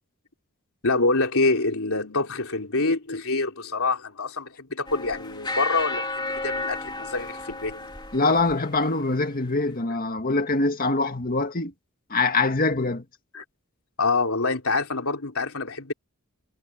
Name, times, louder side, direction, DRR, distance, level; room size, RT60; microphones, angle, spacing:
voice 1, 0.8-7.9 13.3-13.4 14.0-15.9, left 3 dB, 70° left, 3.8 m, -26 dB
sound 1, 4.9-9.1, left 2 dB, 20° left, 2.7 m, -33 dB
voice 2, 8.1-11.7 12.1-13.0, left 3 dB, 40° left, 1.9 m, -24 dB
head